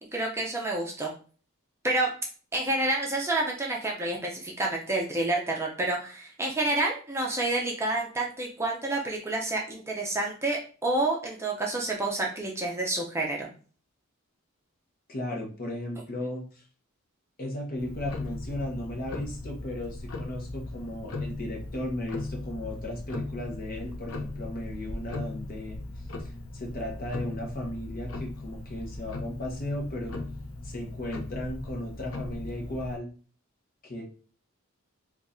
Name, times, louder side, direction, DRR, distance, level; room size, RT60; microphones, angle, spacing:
voice 1, 0.1-1.1 1.8-2.1 2.5-13.5, right 2 dB, 15° right, -1 dB, 0.5 m, -29 dB
voice 2, 15.1-16.6 17.4-25.8 26.2-30.2 30.6-33.1 33.8-34.0, left 1 dB, 45° left, 0 dB, 0.9 m, -35 dB
Tick-tock, 17.8-33.0, left 2 dB, 75° left, 0.6 m, -38 dB
4.5 x 2.4 x 2.6 m, 0.39 s
head